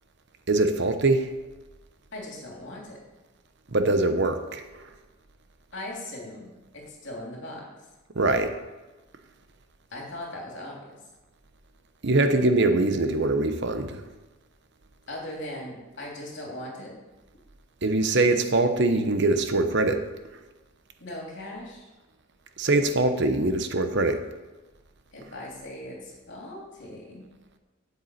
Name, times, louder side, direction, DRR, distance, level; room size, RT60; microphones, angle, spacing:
voice 1, 0.5-1.3 3.7-4.8 8.1-8.5 12.0-14.0 17.8-20.0 22.6-24.2, right 2 dB, 55° right, 8 dB, 0.9 m, -23 dB
voice 2, 2.1-3.0 5.7-7.6 9.9-10.8 15.1-16.9 21.0-21.9 25.1-27.3, left 1 dB, 55° left, -2 dB, 3.2 m, -39 dB
8.2 x 7.1 x 8.5 m, 1.1 s
head